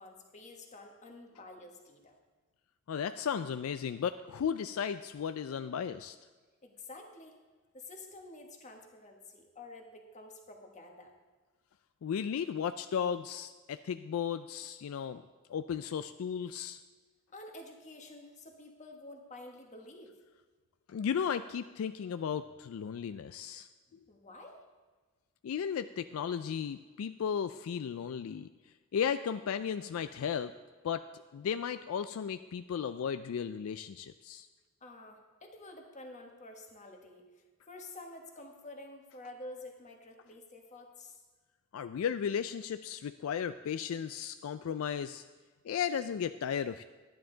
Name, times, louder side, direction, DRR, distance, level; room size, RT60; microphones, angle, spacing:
voice 1, 0.0-2.2 6.6-7.3 7.7-11.1 17.3-20.2 24.1-24.6 34.8-37.3 37.7-41.2, left 2 dB, 35° left, 3 dB, 1.4 m, -49 dB
voice 2, 2.9-6.2 12.0-15.2 15.5-16.8 20.9-23.7 25.4-28.5 28.9-30.5 30.8-31.1 31.3-34.5 41.7-45.2 45.6-46.8, left 7 dB, 75° left, 11 dB, 0.3 m, -35 dB
11.5 x 10.0 x 3.9 m, 1.3 s
head